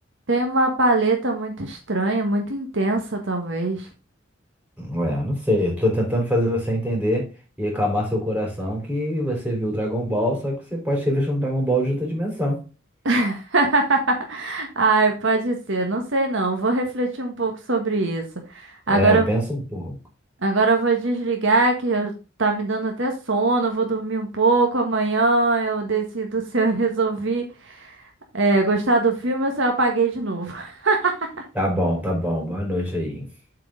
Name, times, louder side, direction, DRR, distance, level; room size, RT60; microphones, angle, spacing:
voice 1, 0.3-3.9 13.0-18.2 18.5-19.3 20.4-22.1 22.4-28.0 28.3-31.3, right 3 dB, 70° right, 3 dB, 1.5 m, -22 dB
voice 2, 4.8-7.3 7.6-12.6 18.9-20.0 31.6-33.3, equal, 10° right, 0 dB, 3.8 m, -24 dB
7.6 x 4.8 x 5.1 m, 0.30 s
head